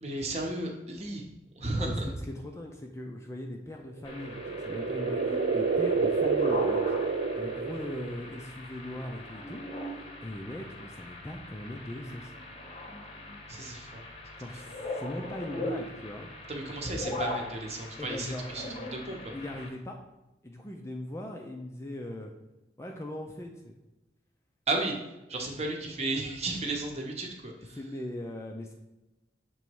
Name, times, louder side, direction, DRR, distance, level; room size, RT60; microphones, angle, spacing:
voice 1, 0.0-1.2 1.6-2.1 13.5-14.0 16.5-19.3 24.7-24.9 25.3-27.8, right 2 dB, 35° right, 1 dB, 0.9 m, -34 dB
voice 2, 1.7-7.0 7.3-9.6 10.2-12.3 14.4-16.3 18.0-18.5 19.3-20.0 20.4-22.3 22.8-23.7 27.7-28.7, left 1 dB, 15° left, 2 dB, 0.4 m, -39 dB
sound 1, 4.0-19.7, left 1 dB, 30° left, 0.8 m, -41 dB
sound 2, 4.1-8.3, right 4 dB, 60° right, 0.3 m, -28 dB
6.9 x 3.0 x 4.6 m, 0.97 s
head